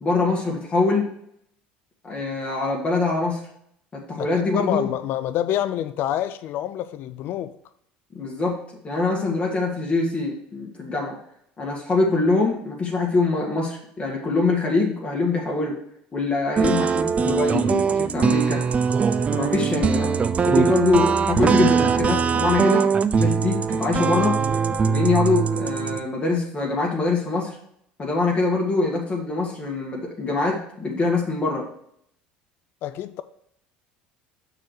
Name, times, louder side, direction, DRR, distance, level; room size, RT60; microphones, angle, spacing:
voice 1, 0.0-1.1 2.0-3.4 4.1-4.9 8.1-8.6 8.8-11.1 11.6-15.7 16.1-18.6 19.3-22.9 23.1-24.4 24.8-27.6 28.0-31.6, left 3 dB, 30° left, 1.6 m, -24 dB
voice 2, 4.2-7.5 32.8-33.2, left 12 dB, 55° left, 0.4 m, -27 dB
sound 1, 16.6-26.0, right 6 dB, 30° right, 0.4 m, -21 dB
6.3 x 4.0 x 6.4 m
hypercardioid pair, 75°, 4 cm